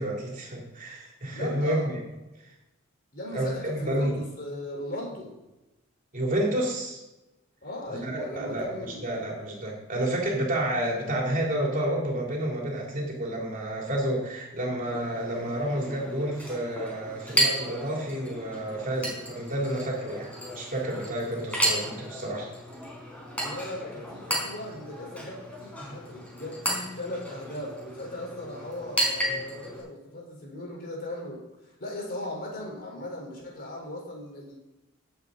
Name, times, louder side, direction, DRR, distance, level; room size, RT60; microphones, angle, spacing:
voice 1, 0.0-2.0 3.3-4.2 6.1-7.0 7.9-8.7 9.0-22.5, right 1 dB, 40° right, -1 dB, 3.3 m, -30 dB
voice 2, 1.3-1.9 3.1-5.4 7.6-9.0 23.3-34.6, left 1 dB, 50° left, -1 dB, 4.3 m, -38 dB
Chink clink, 14.8-29.8, right 1 dB, 5° left, 4.7 m, -33 dB
17.5 x 8.3 x 4.0 m, 1.0 s
head